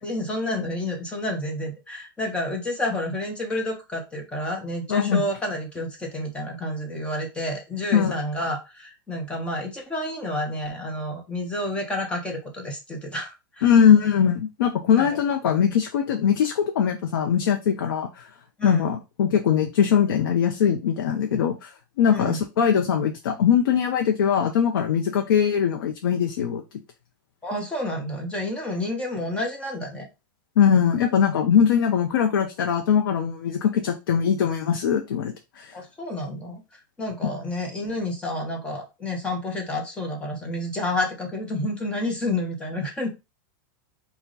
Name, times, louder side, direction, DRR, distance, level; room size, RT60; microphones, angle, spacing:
voice 1, 0.0-13.7 15.0-15.2 18.6-18.9 22.1-22.4 27.4-30.1 35.7-43.1, left 1 dB, 10° left, 1 dB, 1.1 m, -30 dB
voice 2, 4.9-5.2 7.9-8.2 13.6-18.3 18.6-21.7 22.0-26.6 30.6-35.7, left 8 dB, 90° left, 4 dB, 0.7 m, -21 dB
4.8 x 2.3 x 3.9 m, 0.25 s
supercardioid pair, 160°, 11 cm